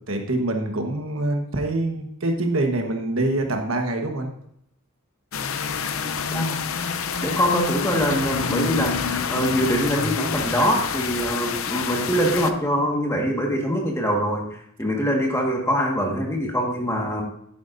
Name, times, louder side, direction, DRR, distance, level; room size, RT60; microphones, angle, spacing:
voice 1, 0.1-4.3, right 2 dB, 65° right, 4 dB, 1.3 m, -25 dB
sound 1, 5.3-12.5, left 5 dB, 70° left, 0.6 m, -27 dB
voice 2, 7.2-14.5 14.8-17.2, equal, 15° left, 0 dB, 1.6 m, -23 dB
10.5 x 9.3 x 2.6 m, 0.72 s
head